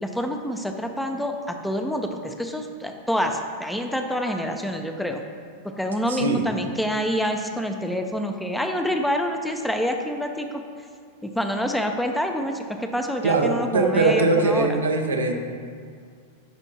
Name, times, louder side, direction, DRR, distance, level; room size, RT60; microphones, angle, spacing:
voice 1, 0.0-5.2 5.8-10.6 11.2-14.7, equal, 5° left, 4 dB, 0.6 m, -27 dB
voice 2, 6.1-6.4 13.2-15.3, right 3 dB, 85° right, 3 dB, 0.7 m, -21 dB
10.0 x 3.5 x 4.1 m, 2.1 s
hypercardioid pair, 100°, 0 cm